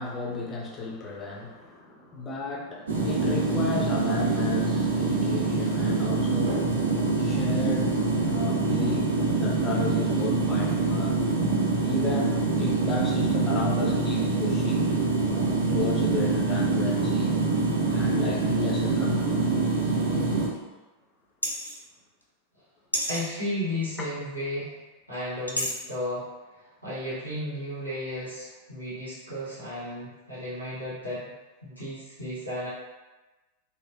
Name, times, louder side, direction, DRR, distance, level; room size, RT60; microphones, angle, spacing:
voice 1, 0.0-6.8 7.2-8.0 8.2-11.2 11.8-14.9 15.2-17.4 17.9-19.4, left 3 dB, 20° left, -2 dB, 0.6 m, -34 dB
sound 1, 2.9-20.5, right 3 dB, 70° right, 0.6 m, -25 dB
sound 2, 21.4-21.8 22.9-23.2 25.5-25.7, equal, 85° left, 0.4 m, -29 dB
voice 2, 23.1-24.7 25.1-26.3 26.5-31.3 31.6-32.7, left 1 dB, 85° right, -11 dB, 1.1 m, -34 dB
3.1 x 2.2 x 2.5 m, 1.2 s
figure-of-eight pair, 90°, 0 cm